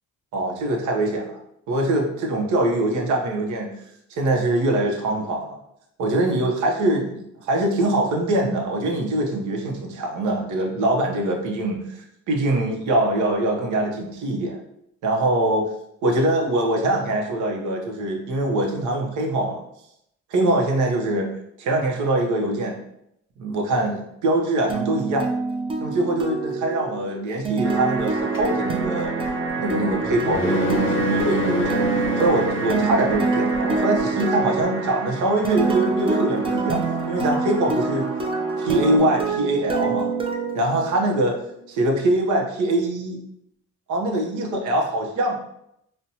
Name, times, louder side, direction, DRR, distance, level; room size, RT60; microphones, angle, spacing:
voice 1, 0.3-1.4 1.7-3.7 4.1-5.6 6.0-14.6 15.0-15.7 16.0-19.6 20.3-21.3 21.6-22.8 23.4-25.3 25.8-29.1 29.6-31.8 32.2-38.1 38.6-40.1 40.5-41.4 41.7-43.2 43.9-45.4, right 1 dB, 80° right, 1 dB, 0.8 m, -23 dB
sound 1, 24.7-41.4, right 4 dB, 20° right, 0.5 m, -26 dB
sound 2, 27.6-39.0, right 3 dB, 40° right, 1.0 m, -32 dB
sound 3, 28.3-33.9, equal, 40° left, 0.6 m, -28 dB
4.1 x 2.1 x 2.7 m, 0.78 s
cardioid pair, 90°, 30 cm